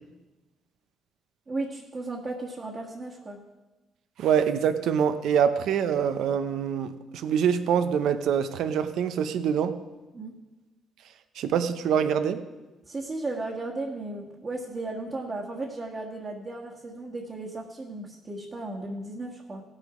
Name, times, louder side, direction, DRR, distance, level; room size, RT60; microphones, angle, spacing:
voice 1, 1.5-3.4 10.1-10.4 12.8-19.6, right 2 dB, 35° right, -4 dB, 1.5 m, -35 dB
voice 2, 4.2-9.8 11.4-12.4, right 8 dB, 80° right, 11 dB, 0.7 m, -25 dB
17.0 x 6.6 x 5.0 m, 1.1 s
cardioid pair, 70°, 0 cm